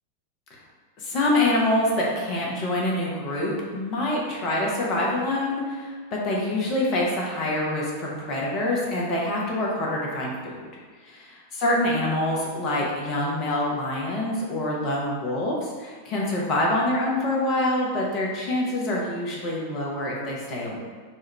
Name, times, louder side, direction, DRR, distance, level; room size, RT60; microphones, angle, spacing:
voice 1, 1.0-10.7 11.1-20.8, left 1 dB, 35° left, -3 dB, 1.1 m, -26 dB
4.8 x 2.6 x 4.3 m, 1.5 s
figure-of-eight pair, 90°, 0 cm